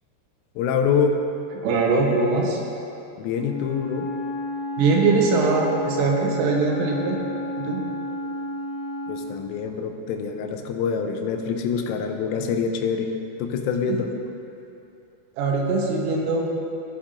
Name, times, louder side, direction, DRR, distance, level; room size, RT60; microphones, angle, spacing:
voice 1, 0.6-1.2 3.2-4.1 9.1-13.1 13.4-14.1, left 6 dB, 85° left, 5 dB, 3.2 m, -25 dB
voice 2, 1.6-2.6 4.8-7.2 7.6-7.8 13.9-14.0 15.4-16.4, right 3 dB, 90° right, 0 dB, 3.4 m, -21 dB
Wind instrument woodwind instrument, 3.3-9.4, left 1 dB, 55° left, 4.0 m, -31 dB
16.0 x 7.2 x 2.5 m, 2.7 s
omnidirectional pair, 5.8 m